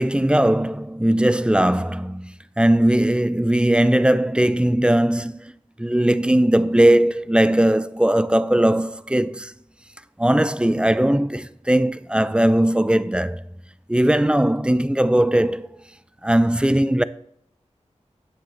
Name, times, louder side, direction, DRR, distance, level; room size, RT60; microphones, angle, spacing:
voice 1, 0.0-5.5 5.8-9.5 10.2-13.4 13.9-15.8 16.2-17.0, right 1 dB, 10° right, 0.4 m, -19 dB
9.2 x 7.3 x 3.1 m
wide cardioid pair, 50°, 13 cm